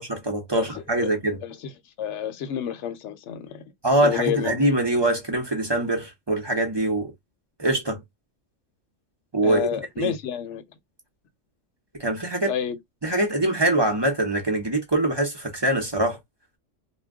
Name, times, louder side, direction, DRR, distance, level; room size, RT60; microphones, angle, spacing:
voice 1, 0.1-1.4 3.8-7.1 7.6-8.0 9.3-10.1 12.0-12.5 13.0-16.2, right 1 dB, 25° right, 0.7 m, -23 dB
voice 2, 1.4-1.7 2.0-3.6 4.0-4.6 9.4-10.6 12.5-12.8, left 10 dB, 70° left, 0.9 m, -29 dB
2.2 x 2.2 x 3.5 m
omnidirectional pair, 1.3 m